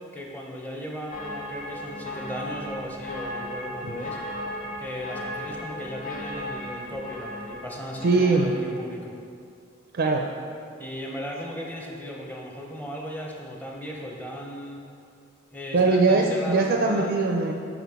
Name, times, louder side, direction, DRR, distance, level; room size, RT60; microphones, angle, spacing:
voice 1, 0.0-4.2 4.8-9.1 10.8-14.8 15.5-17.1, equal, 10° left, -1 dB, 0.7 m, -36 dB
sound 1, 1.1-8.7, left 1 dB, 45° left, 1.4 m, -36 dB
voice 2, 8.0-8.5 9.9-10.3 15.7-17.5, right 3 dB, 50° right, 1 dB, 0.4 m, -21 dB
5.8 x 5.8 x 3.5 m, 2.3 s
head